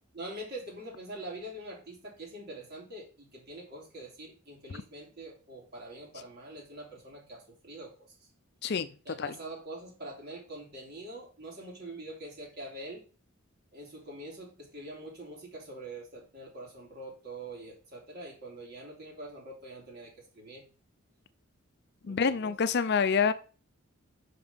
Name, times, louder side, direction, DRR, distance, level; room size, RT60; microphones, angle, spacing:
voice 1, 0.1-7.9 9.0-13.0 13.7-20.6 22.0-22.5, right 1 dB, 50° right, 3.3 m, -44 dB
voice 2, 22.1-23.3, left 6 dB, 55° left, 0.5 m, -27 dB
5.8 x 5.4 x 5.5 m
head